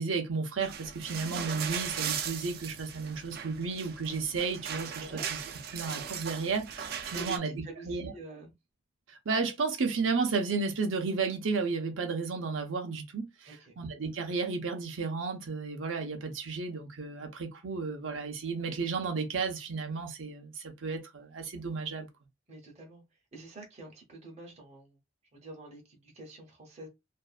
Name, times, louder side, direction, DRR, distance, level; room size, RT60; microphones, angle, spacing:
voice 1, 0.0-5.4 5.7-7.5 7.9-8.1 9.1-22.1, right 4 dB, 85° right, 0.7 m, -33 dB
sound 1, 0.6-7.4, right 8 dB, 55° right, 0.3 m, -38 dB
voice 2, 5.0-5.3 7.1-8.5 13.4-13.8 22.5-23.0 23.3-25.0 25.3-26.9, right 2 dB, 35° right, 0.7 m, -47 dB
2.5 x 2.2 x 2.4 m
head